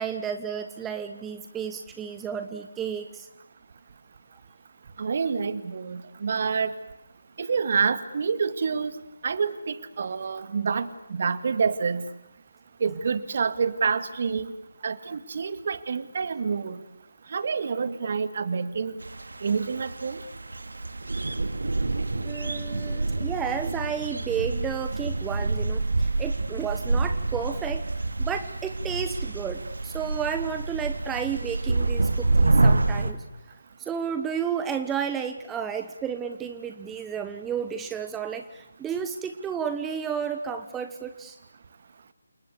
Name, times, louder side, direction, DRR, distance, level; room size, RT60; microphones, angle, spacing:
voice 1, 0.0-3.3 22.2-27.8 28.2-33.2 33.8-41.4, right 7 dB, 10° right, 7 dB, 1.2 m, -32 dB
voice 2, 5.0-6.7 7.4-8.9 9.2-12.0 12.8-14.5 14.8-16.8 17.3-19.0 19.4-20.2, right 5 dB, 45° right, 12 dB, 2.1 m, -27 dB
sound 1, 19.0-33.1, right 2 dB, 65° right, 2.4 m, -27 dB
29.5 x 28.0 x 6.8 m, 0.84 s
figure-of-eight pair, 150°, 0 cm